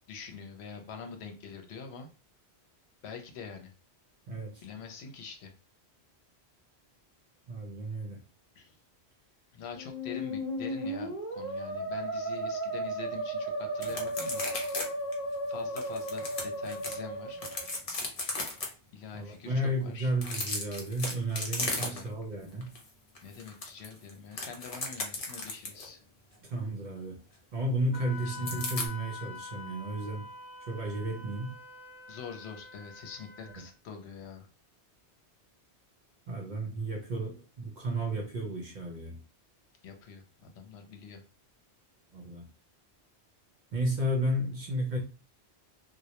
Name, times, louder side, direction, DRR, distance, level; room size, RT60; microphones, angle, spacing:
voice 1, 0.1-2.1 3.0-3.7 4.6-5.5 8.6-8.8 9.5-15.1 15.5-17.4 18.9-20.1 21.6-22.1 23.2-26.0 28.2-28.4 32.1-34.5 39.8-41.2, left 6 dB, 75° left, 0.8 m, -45 dB
voice 2, 4.3-4.6 7.5-8.2 19.1-22.7 26.4-27.2 27.5-30.3 30.7-31.6 36.3-39.2 42.1-42.5 43.7-45.0, right 1 dB, 55° right, 0.6 m, -33 dB
Musical instrument, 9.7-17.8, right 1 dB, 25° right, 1.0 m, -35 dB
sound 1, 13.8-14.9 15.1-15.2 15.8-16.9 17.4-18.7 20.1-22.2 22.6-22.8 23.2-25.9 28.5-28.9, left 2 dB, 45° left, 0.6 m, -35 dB
Wind instrument woodwind instrument, 27.9-33.7, left 3 dB, 25° left, 0.9 m, -46 dB
2.2 x 2.1 x 2.8 m
omnidirectional pair, 1.1 m